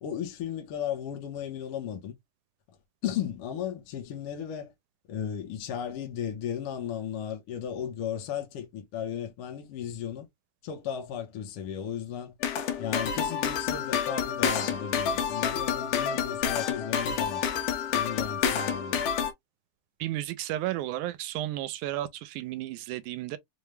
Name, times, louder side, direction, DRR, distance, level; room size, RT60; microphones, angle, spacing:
voice 1, 0.0-2.1 3.0-4.7 5.1-10.3 10.6-12.3 12.8-17.4 17.9-19.0, left 9 dB, 65° left, 1.5 m, -35 dB
sound 1, 12.4-19.3, left 8 dB, 85° left, 2.3 m, -29 dB
voice 2, 20.0-23.4, right 14 dB, 85° right, 2.0 m, -33 dB
5.3 x 2.2 x 3.1 m
omnidirectional pair, 3.5 m